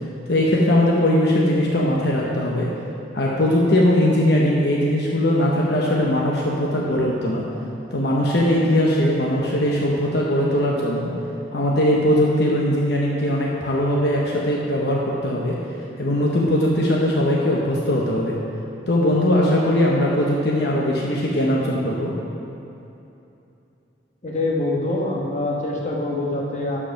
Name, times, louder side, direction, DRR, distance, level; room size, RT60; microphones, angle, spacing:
voice 1, 0.3-2.7 3.1-7.4 7.9-11.1 11.5-15.6 16.0-18.3 18.9-22.1, left 1 dB, 65° left, -3 dB, 1.0 m, -20 dB
voice 2, 24.2-26.8, left 2 dB, 40° left, -2 dB, 1.3 m, -24 dB
11.5 x 4.9 x 5.8 m, 2.8 s
head